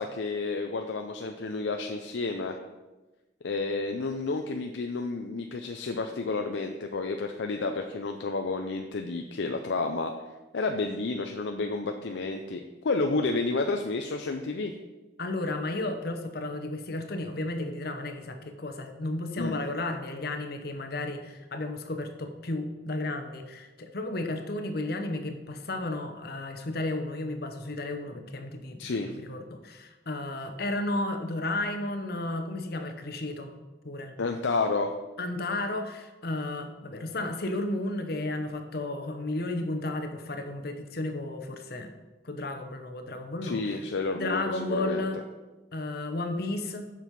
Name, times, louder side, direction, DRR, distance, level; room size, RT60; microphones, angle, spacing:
voice 1, 0.0-2.6 3.4-10.1 10.5-14.7 19.4-19.6 28.8-29.1 34.2-34.9 43.4-45.1, left 3 dB, 75° left, 4 dB, 0.5 m, -30 dB
voice 2, 15.2-33.5 33.8-34.1 35.2-41.9 42.2-43.8 44.1-45.2 45.7-46.9, left 2 dB, 55° left, 6 dB, 0.9 m, -33 dB
7.3 x 6.2 x 5.3 m, 1.2 s
head